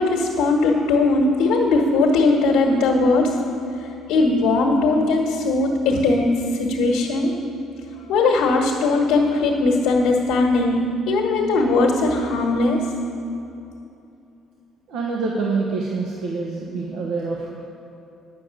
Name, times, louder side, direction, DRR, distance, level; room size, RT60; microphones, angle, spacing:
voice 1, 0.0-3.4 4.1-7.3 8.1-10.8 11.1-12.8, left 3 dB, 85° left, 0 dB, 1.5 m, -19 dB
voice 2, 14.9-17.5, right 4 dB, 70° right, -2 dB, 1.2 m, -26 dB
9.3 x 6.7 x 8.7 m, 2.7 s
cardioid pair, 175°, 0 cm